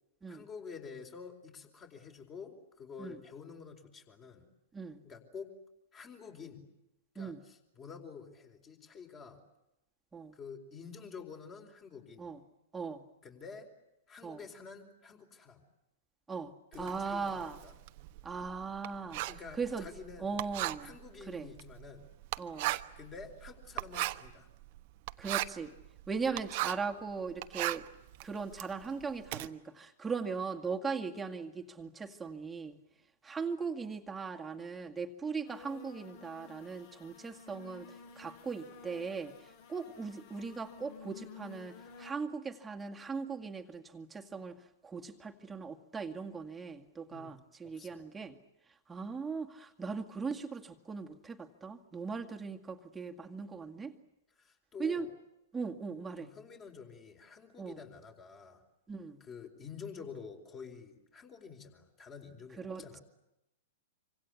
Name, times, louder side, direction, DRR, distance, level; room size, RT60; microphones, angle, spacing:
voice 1, 0.3-4.5 5.0-5.5 5.9-6.6 7.1-9.4 10.3-12.3 13.2-13.7 14.1-15.6 16.7-17.7 19.3-20.3 20.8-22.1 22.9-24.5 47.1-48.0 54.4-55.1 56.2-58.6 59.2-63.0, left 5 dB, 25° left, 3 dB, 4.6 m, -49 dB
voice 2, 12.7-13.0 14.2-14.4 16.3-17.6 18.2-19.2 19.6-19.9 20.2-20.9 21.3-21.5 22.4-22.7 25.2-25.7 26.1-27.9 28.2-32.8 33.2-37.9 38.2-44.6 44.8-48.4 48.9-53.9 54.8-55.1 55.5-56.3 57.6-57.8 58.9-59.2 62.6-63.0, right 5 dB, 10° right, 2 dB, 2.1 m, -39 dB
Writing, 16.7-26.9 27.3-29.5, right 20 dB, 45° right, 1.1 m, -38 dB
sound 1, 35.5-42.1, left 5 dB, 50° left, 6.9 m, -53 dB
26.5 x 26.0 x 8.5 m, 0.90 s
figure-of-eight pair, 105°, 0 cm